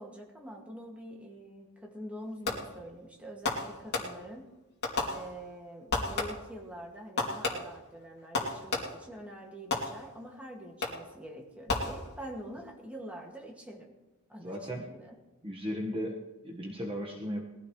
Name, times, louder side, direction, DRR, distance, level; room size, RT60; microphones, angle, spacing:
voice 1, 0.0-4.5 5.1-13.9 14.3-15.2, equal, 5° right, -1 dB, 2.1 m, -45 dB
Fireworks, 2.5-2.9 3.4-4.4 4.8-5.6 5.9-6.6 7.2-9.2 9.7-10.3 10.8-11.2 11.7-12.4, left 3 dB, 50° left, 2.8 m, -34 dB
voice 2, 14.4-14.8 15.4-17.4, equal, 25° right, -1 dB, 1.5 m, -36 dB
20.5 x 15.0 x 3.2 m, 1.1 s
head